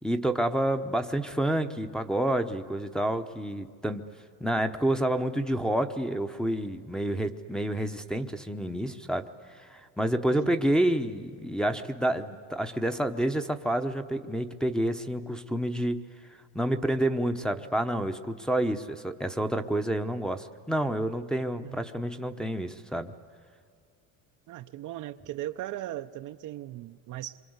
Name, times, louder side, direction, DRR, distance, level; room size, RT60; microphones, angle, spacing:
voice 1, 0.0-4.1 4.4-9.3 9.6-16.1 16.5-23.1, right 1 dB, ahead, 4 dB, 0.9 m, -29 dB
voice 2, 24.5-27.4, right 14 dB, 45° right, 8 dB, 0.7 m, -38 dB
27.0 x 25.0 x 8.0 m, 2.2 s
cardioid pair, 130°, 42 cm